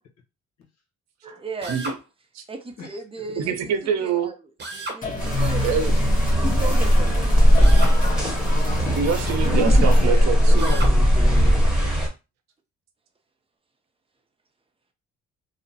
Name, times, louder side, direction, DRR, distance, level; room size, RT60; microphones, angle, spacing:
voice 1, 1.2-1.8 2.5-3.6 4.0-4.4 4.7-5.7 6.4-7.5, right 4 dB, 20° right, 0.6 m, -35 dB
Drill, 1.6-2.0 4.6-5.0 7.6-8.0 10.6-11.0, right 2 dB, 35° right, 1.0 m, -33 dB
voice 2, 3.4-4.3 5.6-5.9 8.9-10.7, right 6 dB, 60° right, 0.7 m, -25 dB
sound 1, 5.0-10.1, left 2 dB, 25° left, 0.9 m, -30 dB
sound 2, 5.2-12.1, equal, 5° right, 1.2 m, -18 dB
voice 3, 10.0-11.9, left 6 dB, 65° left, 1.0 m, -36 dB
2.7 x 2.0 x 2.7 m
cardioid pair, 90°, 30 cm